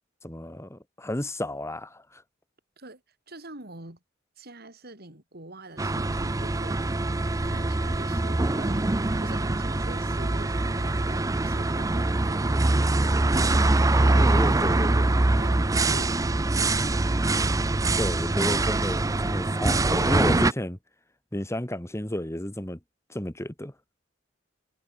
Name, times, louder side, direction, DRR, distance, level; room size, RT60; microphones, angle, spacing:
voice 1, 0.2-2.2 13.9-15.0 18.0-20.8 21.3-22.8 23.1-23.7, left 1 dB, 15° left, 1.9 m, -32 dB
voice 2, 3.3-4.0 4.4-7.0 7.4-8.8 9.2-16.7, right 2 dB, 55° right, 5.7 m, -45 dB
sound 1, 5.7-16.6, right 2 dB, 90° right, 6.0 m, -58 dB
sound 2, 5.8-20.5, right 2 dB, 20° right, 0.5 m, -24 dB
head